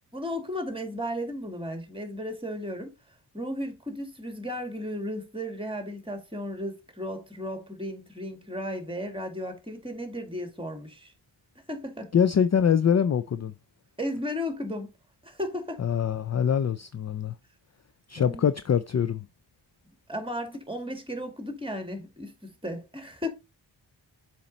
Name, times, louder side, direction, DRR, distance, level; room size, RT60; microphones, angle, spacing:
voice 1, 0.1-2.9 3.3-11.1 11.7-12.1 14.0-14.9 15.2-15.8 18.2-18.4 20.1-23.3, equal, 10° right, 2.2 m, -34 dB
voice 2, 12.1-13.5 15.8-17.3 18.1-19.3, left 8 dB, 35° left, 0.4 m, -24 dB
7.3 x 4.4 x 4.0 m
wide cardioid pair, 80°, 46 cm